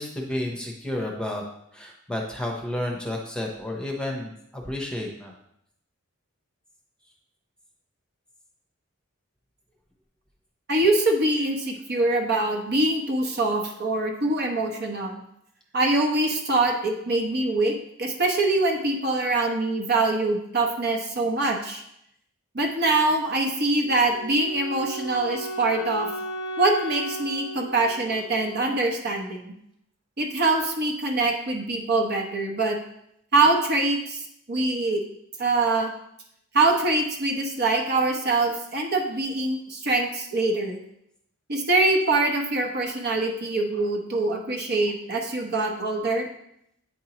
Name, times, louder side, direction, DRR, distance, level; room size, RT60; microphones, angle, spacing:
voice 1, 0.0-1.4 1.7-5.3, left 1 dB, 5° left, 0 dB, 0.8 m, -31 dB
voice 2, 10.7-15.1 15.7-21.8 22.5-26.1 26.6-29.5 30.2-32.8 33.3-34.2 34.5-35.0 35.4-35.9 36.5-40.8 41.5-46.3, right 2 dB, 55° right, 3 dB, 1.0 m, -24 dB
Wind instrument woodwind instrument, 23.8-28.9, right 1 dB, 70° right, 1.5 m, -35 dB
8.7 x 4.5 x 3.0 m, 0.75 s
head